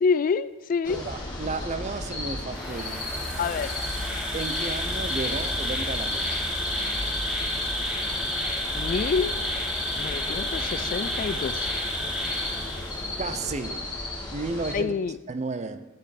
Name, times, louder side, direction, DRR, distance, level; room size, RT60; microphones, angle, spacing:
voice 1, 0.0-1.0 3.4-3.7 8.7-9.4 10.0-11.7 14.7-15.2, left 5 dB, 45° left, 15 dB, 0.3 m, -27 dB
sound 1, 0.8-14.7, left 1 dB, 20° left, 2.2 m, -34 dB
voice 2, 0.9-3.1 4.3-6.4 13.2-13.9 14.3-15.0 15.3-15.9, right 3 dB, 35° right, 12 dB, 0.6 m, -33 dB
Insect, 2.5-13.3, left 1 dB, 5° right, 2.9 m, -31 dB
13.0 x 6.6 x 4.9 m, 1.0 s
head